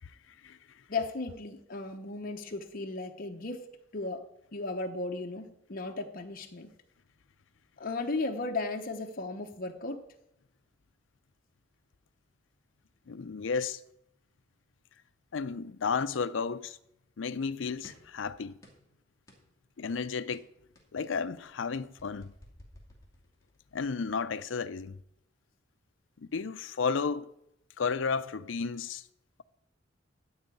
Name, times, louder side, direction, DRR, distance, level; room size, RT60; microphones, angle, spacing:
voice 1, 0.9-3.7 3.9-4.2 4.5-6.7 7.8-10.0, left 3 dB, 50° left, 0.9 m, -35 dB
voice 2, 13.1-13.8 15.3-16.8 17.2-18.6 19.8-20.5 20.9-22.3 23.7-25.0 26.2-27.3 27.8-29.0, left 5 dB, 75° left, 0.5 m, -33 dB
sound 1, 17.8-18.2 18.6-18.9 19.3-19.5 19.8-20.0 20.3-23.7, left 1 dB, 15° left, 2.4 m, -56 dB
13.0 x 4.9 x 8.3 m
head